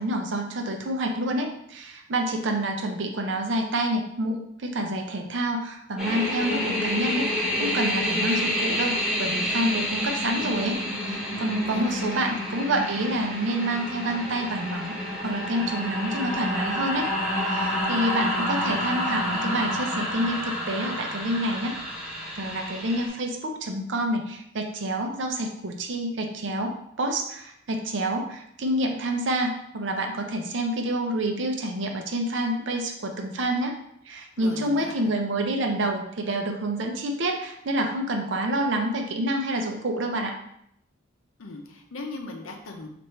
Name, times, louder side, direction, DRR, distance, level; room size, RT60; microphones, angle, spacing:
voice 1, 0.0-10.8 11.0-15.0 15.2-17.1 17.4-21.8 22.4-33.8 34.1-40.4, right 1 dB, 65° right, 3 dB, 0.6 m, -28 dB
sound 1, 6.0-23.1, equal, ahead, 0.8 m, -29 dB
voice 2, 11.7-12.3 34.4-35.1 41.4-42.9, left 3 dB, 85° left, 3 dB, 0.6 m, -39 dB
3.1 x 2.5 x 4.4 m, 0.73 s
head